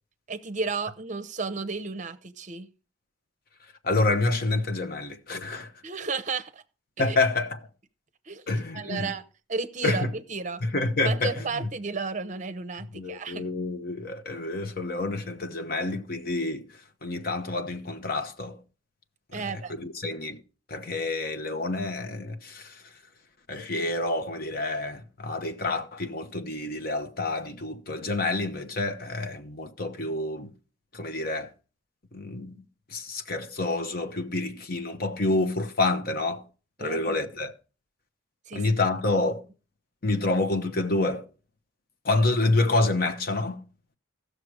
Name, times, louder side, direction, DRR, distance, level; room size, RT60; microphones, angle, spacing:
voice 1, 0.3-2.7 5.8-6.6 7.0-7.2 8.3-9.2 9.5-10.6 11.0-13.5 19.3-19.7 36.8-37.2 38.5-38.6, right 4 dB, 35° right, 0.7 m, -33 dB
voice 2, 3.8-5.7 7.0-7.6 8.5-9.1 9.8-10.1 10.6-11.7 12.9-16.7 17.0-18.6 19.3-19.5 19.8-20.4 20.7-22.8 23.5-30.5 30.9-31.5 32.1-32.6 32.9-36.4 36.8-37.5 38.5-39.4 40.0-41.2 42.0-43.6, left 2 dB, 50° left, 1.0 m, -28 dB
15.0 x 6.6 x 4.8 m
head